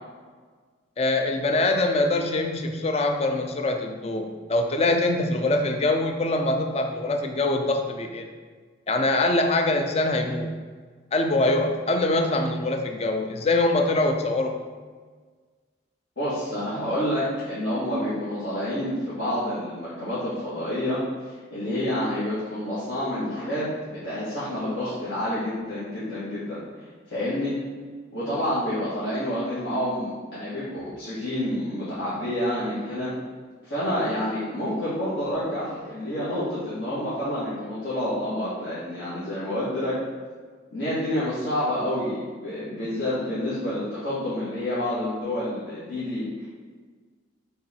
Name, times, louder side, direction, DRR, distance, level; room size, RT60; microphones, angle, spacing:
voice 1, 1.0-8.3 8.9-10.5 11.1-14.7, left 2 dB, 35° left, 5 dB, 0.5 m, -24 dB
voice 2, 16.2-23.7 23.9-26.6 27.1-27.6 28.1-33.1 33.6-40.0 40.7-46.3, left 1 dB, 65° left, -13 dB, 1.9 m, -28 dB
6.8 x 3.8 x 4.5 m, 1.5 s
head